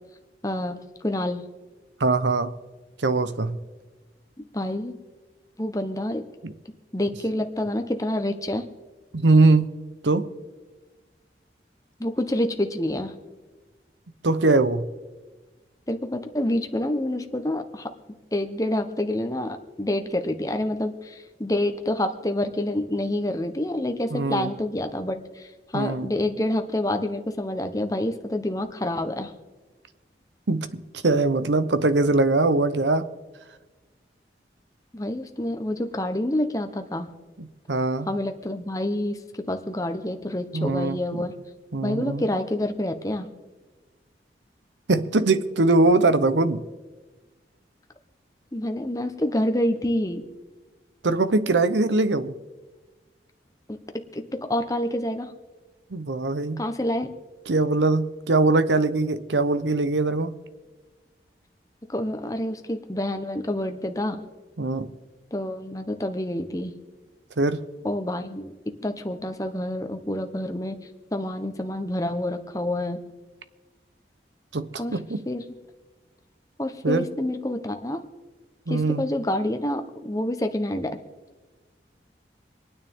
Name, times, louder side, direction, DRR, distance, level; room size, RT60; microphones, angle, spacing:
voice 1, 0.4-1.4 4.4-4.9 5.6-6.2 6.9-8.6 12.0-13.1 15.9-17.9 18.3-29.3 34.9-37.1 38.1-41.4 41.8-43.3 48.5-50.3 53.7-53.8 54.1-55.3 56.6-57.1 61.9-64.2 65.3-66.7 67.8-68.5 68.8-73.1 74.8-75.0 75.3-75.4 76.6-78.1 78.7-81.0, left 1 dB, 20° left, 6 dB, 1.0 m, -28 dB
voice 2, 2.0-2.5 3.0-3.6 6.4-6.5 9.1-9.7 10.0-10.3 14.2-14.8 24.1-24.5 25.7-26.1 30.5-33.1 37.4-38.1 40.5-41.2 41.7-42.2 44.9-46.6 51.0-52.3 55.9-56.6 57.5-60.3 64.6-64.9 67.4-67.6 74.5-75.2 76.8-77.1 78.7-79.0, right 3 dB, 90° right, 12 dB, 0.8 m, -22 dB
26.5 x 9.6 x 3.7 m, 1.3 s
head